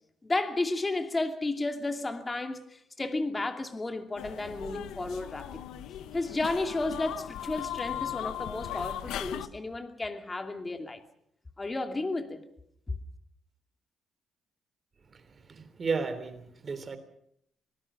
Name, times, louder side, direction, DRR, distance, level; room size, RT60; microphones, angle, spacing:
voice 1, 0.2-5.6 6.1-11.0 11.6-12.4, left 2 dB, 20° left, 2.6 m, -32 dB
sound 1, 4.2-9.5, left 11 dB, 85° left, 1.0 m, -38 dB
voice 2, 15.5-17.0, right 4 dB, 40° right, 3.2 m, -33 dB
25.0 x 19.5 x 6.2 m
cardioid pair, 90°, 0 cm